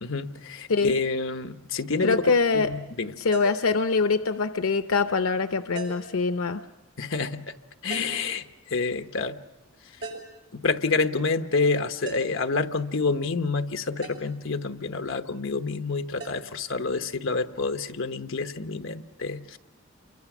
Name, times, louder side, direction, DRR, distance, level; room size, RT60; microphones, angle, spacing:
voice 1, 0.0-3.1 7.0-7.5 7.8-9.4 10.5-19.6, left 4 dB, 65° left, 7 dB, 1.1 m, -28 dB
voice 2, 2.0-2.7 3.2-6.6, left 4 dB, 85° left, 9 dB, 0.7 m, -24 dB
sound 1, 3.3-3.7 5.8-6.2 7.9-8.3 10.0-10.4 12.0-12.5 14.0-14.3 16.2-16.4, right 3 dB, 65° right, 6.8 m, -38 dB
28.0 x 24.0 x 6.1 m, 1.1 s
head